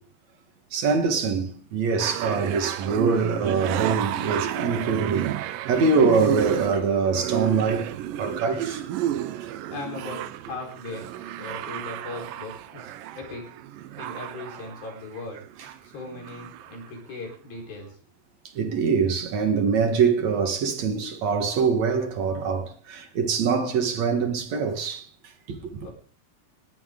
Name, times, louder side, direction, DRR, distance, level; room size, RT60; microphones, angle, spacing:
voice 1, 0.7-7.9 8.2-8.9 18.5-25.1 25.5-25.9, right 5 dB, 55° right, 2.6 m, -24 dB
sound 1, 2.0-15.8 16.0-16.9 17.3-17.4, right 12 dB, 80° right, 2.4 m, -32 dB
voice 2, 9.7-11.1 11.4-13.5 14.0-15.4 15.8-17.9 25.8-25.9, left 3 dB, 80° left, 6.3 m, -38 dB
20.0 x 12.0 x 3.8 m
omnidirectional pair, 4.1 m